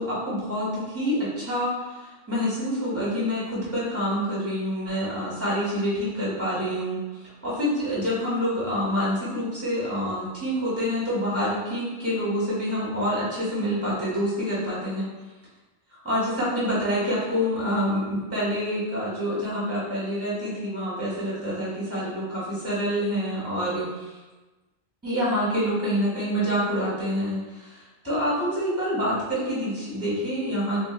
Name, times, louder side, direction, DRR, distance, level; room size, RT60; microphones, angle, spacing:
voice 1, 0.0-15.1 15.9-24.2 25.0-30.8, equal, 15° right, -9 dB, 1.3 m, -27 dB
2.6 x 2.3 x 3.8 m, 1.1 s
omnidirectional pair, 1.1 m